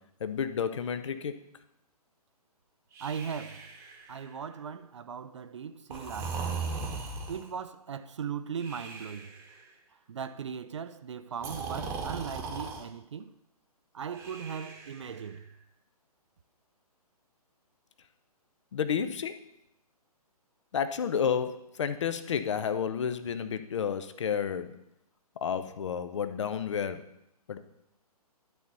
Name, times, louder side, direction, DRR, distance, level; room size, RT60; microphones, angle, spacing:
voice 1, 0.2-1.4 18.7-19.4 20.7-24.7 25.4-27.0 27.5-27.6, left 7 dB, 50° left, 0.7 m, -31 dB
Breathing, 2.9-4.5 5.9-7.6 8.6-9.6 11.4-12.8 14.1-15.3, right 4 dB, 15° right, 1.1 m, -38 dB
voice 2, 3.0-3.7 4.1-6.7 7.3-9.3 10.1-13.3 13.9-15.5, right 7 dB, 50° right, 0.4 m, -38 dB
12.0 x 4.1 x 6.7 m
figure-of-eight pair, 130°, 20 cm